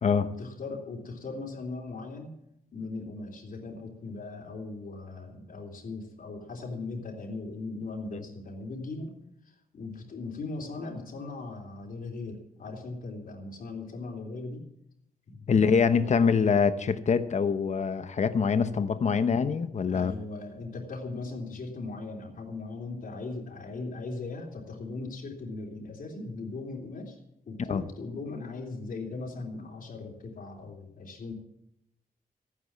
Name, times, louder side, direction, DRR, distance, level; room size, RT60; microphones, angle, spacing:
voice 1, 0.2-2.3 2.7-9.1 9.4-14.6 15.3-15.5 15.8-16.1 19.9-27.2 27.4-31.3, left 3 dB, 65° left, -1 dB, 3.4 m, -39 dB
voice 2, 15.5-20.1 27.7-27.8, left 6 dB, 50° left, 11 dB, 0.9 m, -24 dB
15.0 x 9.8 x 7.4 m, 0.79 s
wide cardioid pair, 170°, 16 cm